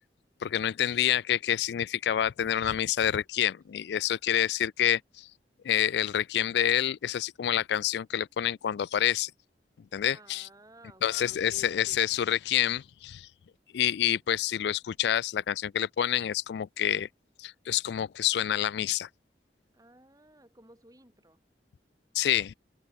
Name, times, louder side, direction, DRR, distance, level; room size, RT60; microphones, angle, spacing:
voice 1, 0.4-5.3 5.6-9.3 9.9-10.5 11.0-13.3 13.7-17.1 17.4-19.1 22.1-22.5, left 10 dB, 70° left, 0.3 m, -28 dB
voice 2, 10.1-11.9 19.7-21.4, right 1 dB, 20° right, 7.6 m, -56 dB
head